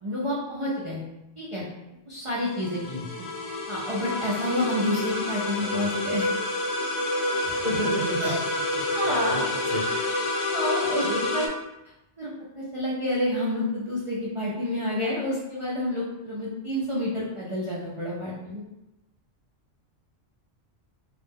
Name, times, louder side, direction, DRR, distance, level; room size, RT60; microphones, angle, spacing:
voice 1, 0.0-1.0 1.4-1.7 2.1-2.8 3.1-3.2 3.7-6.3 8.2-8.4 8.9-9.4 9.9-10.0 10.5-11.0 11.3-11.5 12.2-18.6, left 1 dB, 45° right, -7 dB, 0.4 m, -29 dB
sound 1, 2.4-11.5, left 2 dB, 65° left, 0.8 m, -28 dB
voice 2, 7.4-8.3 8.7-8.8 9.3-9.4 9.7-9.8 11.0-11.3, equal, 35° left, -7 dB, 0.7 m, -31 dB
2.4 x 2.1 x 3.4 m, 0.93 s
omnidirectional pair, 1.2 m